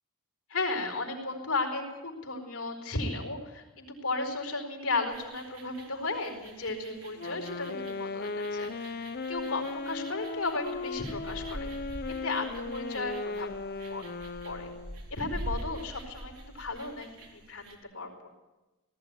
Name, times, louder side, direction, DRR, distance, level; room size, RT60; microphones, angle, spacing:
voice 1, 0.5-11.7 12.2-13.5 13.9-14.0 14.4-14.7 15.1-18.1, left 3 dB, 70° left, 2 dB, 4.5 m, -35 dB
sound 1, 5.1-17.7, right 1 dB, 80° right, 3.7 m, -45 dB
Wind instrument woodwind instrument, 7.2-15.0, left 3 dB, 45° left, 0.8 m, -37 dB
18.5 x 15.0 x 9.6 m, 1.1 s
head